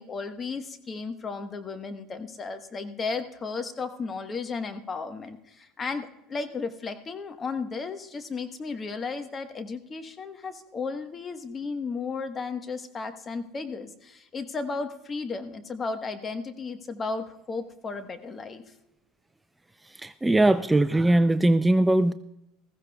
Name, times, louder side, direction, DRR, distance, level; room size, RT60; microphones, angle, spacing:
voice 1, 0.0-18.6, left 4 dB, 30° left, 8 dB, 1.2 m, -34 dB
voice 2, 19.9-22.1, right 1 dB, 10° right, 13 dB, 0.4 m, -21 dB
20.0 x 15.0 x 2.3 m, 0.86 s
supercardioid pair, 95°, 0 cm